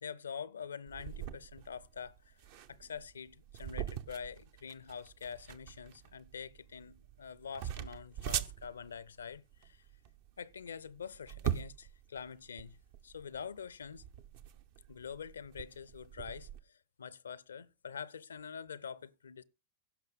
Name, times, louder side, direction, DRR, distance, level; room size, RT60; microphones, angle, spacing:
voice 1, 0.0-2.4 2.7-9.9 10.4-12.8 13.0-14.0 14.9-19.4, left 6 dB, 70° left, 0.5 m, -45 dB
sound 1, 0.9-16.6, right 10 dB, 50° right, 0.8 m, -43 dB
16.0 x 5.8 x 3.6 m
figure-of-eight pair, 90°, 0 cm